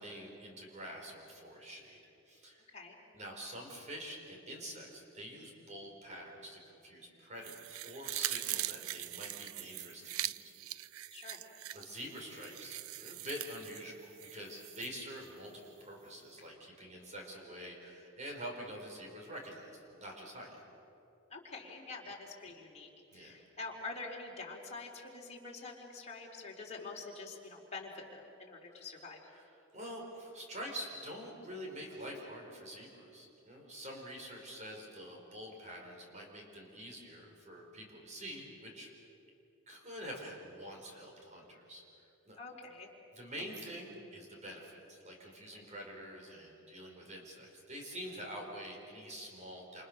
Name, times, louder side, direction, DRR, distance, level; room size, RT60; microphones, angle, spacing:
voice 1, 0.0-2.0 2.3-2.7 3.1-10.5 11.7-20.5 23.1-23.3 29.3-29.4 29.7-38.9 39.7-41.8 42.2-42.4 43.1-49.8, equal, 35° right, 0 dB, 4.9 m, -46 dB
sound 1, 7.4-14.9 15.3-15.4, right 15 dB, 85° right, 0.5 m, -41 dB
voice 2, 21.3-29.2 42.3-42.9, left 3 dB, 35° left, -1 dB, 4.0 m, -46 dB
28.5 x 28.0 x 6.6 m, 2.9 s
head